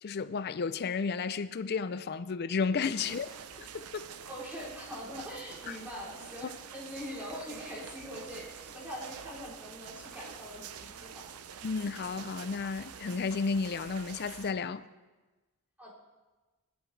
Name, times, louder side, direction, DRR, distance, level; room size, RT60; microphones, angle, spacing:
voice 1, 0.0-3.3 3.6-4.1 5.7-5.8 11.6-14.8, left 5 dB, 45° left, 0.4 m, -32 dB
sound 1, 3.0-14.5, right 7 dB, 80° right, 0.6 m, -47 dB
voice 2, 4.3-11.3 15.8-15.9, equal, 10° right, 3.5 m, -43 dB
17.5 x 12.0 x 3.3 m
head